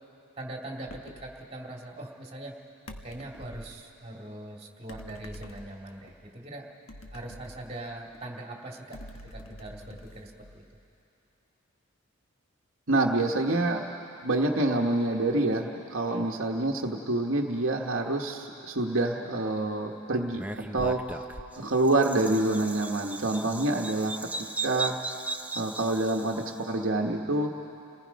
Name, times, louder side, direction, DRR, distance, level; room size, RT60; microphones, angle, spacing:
voice 1, 0.4-2.5 3.0-6.7 7.1-9.0 9.3-10.6 16.0-16.3, right 1 dB, 30° right, 0 dB, 2.1 m, -41 dB
sound 1, 0.9-1.3 2.9-3.8 4.9-6.1 6.9-8.2 8.9-10.8, left 1 dB, 80° left, 1.3 m, -47 dB
voice 2, 12.9-13.8 14.2-21.0 21.5-24.1 24.6-24.9 25.5-27.5, right 2 dB, 70° right, 0 dB, 1.2 m, -27 dB
Bird vocalization bird call bird song, 20.3-26.6, right 3 dB, 5° right, 0.5 m, -37 dB
29.5 x 19.0 x 5.2 m, 2.8 s
head